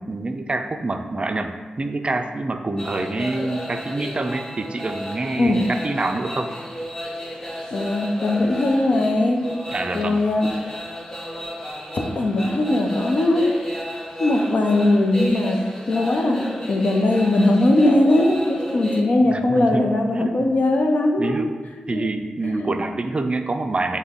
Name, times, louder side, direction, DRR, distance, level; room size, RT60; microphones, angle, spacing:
voice 1, 0.1-6.5 9.7-10.3 19.2-19.9 20.1-20.6 21.2-21.6 21.9-24.0, right 2 dB, 40° right, 6 dB, 0.3 m, -26 dB
sound 1, 2.8-19.0, equal, 20° left, 0.8 m, -33 dB
voice 2, 7.7-9.4 9.9-10.5 11.9-13.6 14.2-15.6 15.9-16.4 16.7-21.4 21.9-22.1 22.4-22.7, left 1 dB, 65° left, 2 dB, 0.6 m, -19 dB
5.8 x 2.1 x 3.5 m, 1.4 s
cardioid pair, 55°, 3 cm